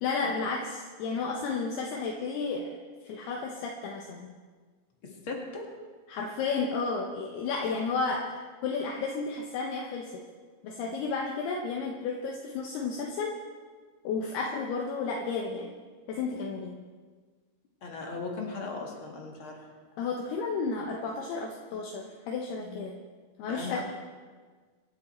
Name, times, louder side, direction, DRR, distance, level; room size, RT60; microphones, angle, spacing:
voice 1, 0.0-2.8 3.0-4.3 6.1-8.4 8.6-10.2 10.6-13.4 14.0-15.8 16.1-16.8 20.0-23.0 23.4-23.8, left 4 dB, 70° left, 0 dB, 2.9 m, -32 dB
voice 2, 5.0-5.7 17.8-19.6 23.5-23.8, left 3 dB, 50° left, 0 dB, 1.6 m, -37 dB
25.0 x 9.9 x 4.4 m, 1.5 s
omnidirectional pair, 5.2 m